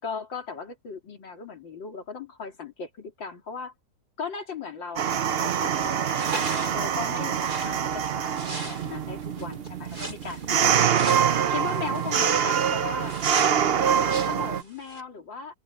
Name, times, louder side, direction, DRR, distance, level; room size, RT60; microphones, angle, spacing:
voice 1, 0.0-3.7 4.2-6.4 6.7-10.7 11.5-13.2 13.8-15.5, left 5 dB, 80° left, 3.7 m, -37 dB
sound 1, 5.0-14.6, right 8 dB, 70° right, 0.5 m, -25 dB
sound 2, 5.7-15.0, right 2 dB, 55° right, 7.1 m, -38 dB
omnidirectional pair, 2.0 m